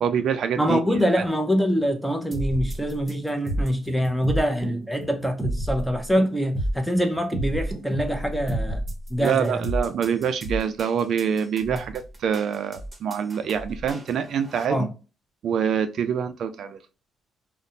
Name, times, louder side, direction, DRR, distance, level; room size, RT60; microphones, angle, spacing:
voice 1, 0.0-1.2 9.2-14.9 15.4-16.8, right 7 dB, 65° right, 0.3 m, -25 dB
voice 2, 0.6-8.8 9.1-9.6 14.7-14.9, equal, ahead, 0.6 m, -24 dB
sound 1, 2.3-14.6, right 1 dB, 25° right, 0.9 m, -31 dB
2.5 x 2.1 x 2.7 m
cardioid pair, 90°, 0 cm